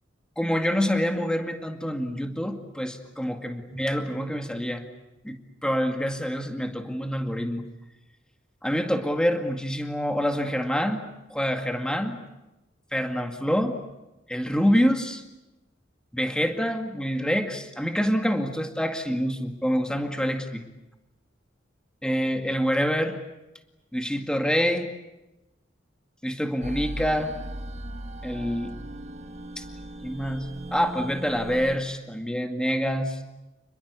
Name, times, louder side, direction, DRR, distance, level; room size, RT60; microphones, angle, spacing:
voice 1, 0.4-4.9 5.2-7.6 8.6-11.0 11.3-12.2 12.9-13.8 14.3-15.2 16.1-20.6 22.0-23.2 23.9-24.9 26.2-27.3 28.2-28.7 29.6-29.7 30.0-33.2, equal, 5° left, 5 dB, 2.1 m, -26 dB
sound 1, 26.6-31.8, right 1 dB, 35° right, 1.8 m, -38 dB
29.0 x 21.5 x 8.3 m, 0.98 s
head